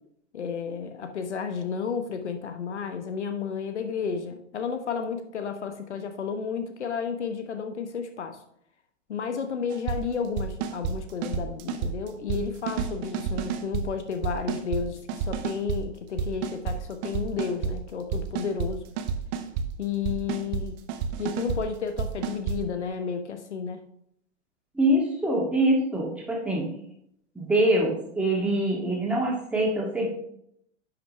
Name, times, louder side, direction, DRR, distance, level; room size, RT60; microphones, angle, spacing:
voice 1, 0.3-8.4 9.1-18.9 19.8-20.8 21.2-23.9, left 6 dB, 65° left, 8 dB, 1.1 m, -32 dB
sound 1, 9.7-10.0 10.4-10.9 11.2-12.4 12.7-13.8 14.2-14.8 15.1-15.8 16.2-16.8 17.0-17.7 18.1-18.7 19.0-19.7 20.0-20.6 20.9-21.6 22.0-22.6, right 6 dB, 35° right, 0.9 m, -29 dB
voice 2, 24.7-26.7 27.4-30.1, right 1 dB, 5° right, -3 dB, 2.3 m, -24 dB
10.5 x 5.9 x 3.3 m, 0.73 s
figure-of-eight pair, 100°, 37 cm